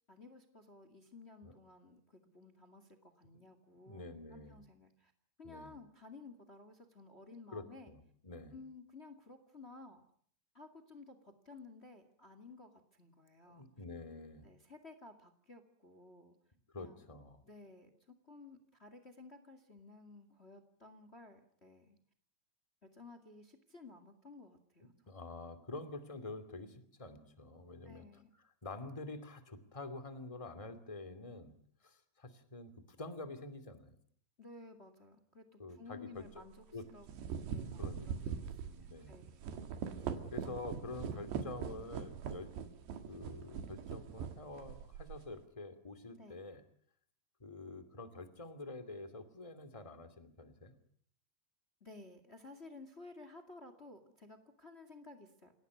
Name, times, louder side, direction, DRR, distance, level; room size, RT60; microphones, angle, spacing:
voice 1, 0.1-5.1 5.4-7.9 8.5-10.0 10.5-13.7 14.4-16.3 16.7-17.0 17.4-22.0 22.8-24.9 27.8-28.3 34.4-36.6 36.9-37.1 37.5-39.5 46.2-46.4 51.8-55.5, left 3 dB, 30° left, 10 dB, 1.1 m, -55 dB
voice 2, 3.8-4.6 5.4-5.7 7.5-8.5 13.5-14.5 16.7-17.4 25.1-28.0 28.6-31.5 31.8-34.0 35.6-36.4 36.7-36.8 37.8-38.4 38.9-39.2 40.3-42.5 43.1-46.6 47.4-50.8, left 2 dB, 15° left, 9 dB, 1.3 m, -47 dB
sound 1, 36.2-36.4 36.9-45.3, right 7 dB, 75° right, 4.1 m, -42 dB
28.0 x 17.5 x 9.5 m, 0.62 s
omnidirectional pair, 5.0 m